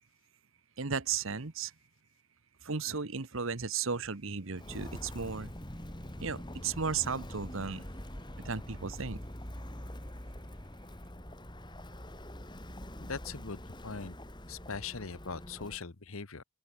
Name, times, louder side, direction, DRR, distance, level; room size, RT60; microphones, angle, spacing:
voice 1, 0.8-1.7 2.6-5.5 6.2-7.8 8.4-9.2, right 5 dB, 65° right, 1.2 m, -35 dB
Walk footsteps, 4.5-15.8, equal, 20° left, 3.8 m, -44 dB
voice 2, 13.0-14.2 14.5-16.4, left 4 dB, 70° left, 1.2 m, -41 dB
open air
head